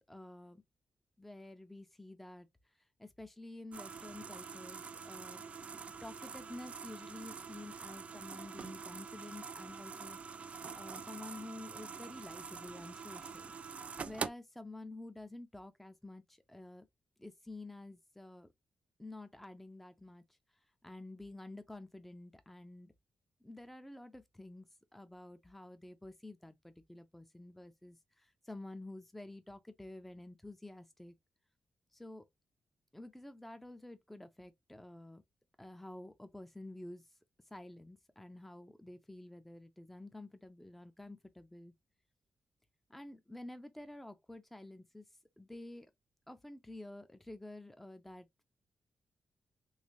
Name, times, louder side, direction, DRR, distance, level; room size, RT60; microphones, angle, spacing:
voice 1, 0.1-0.6 1.2-2.5 3.0-5.4 5.7-10.2 10.7-13.5 14.1-16.9 17.2-18.5 19.0-20.2 20.8-22.9 23.4-31.1 31.9-32.3 32.9-35.2 35.6-37.1 37.5-41.7 42.9-45.1 45.4-45.9 46.3-48.4, left 2 dB, 5° left, 0.5 m, -50 dB
sound 1, 3.7-14.3, right 5 dB, 50° right, 0.4 m, -45 dB
3.2 x 3.2 x 2.6 m
cardioid pair, 95°, 3 cm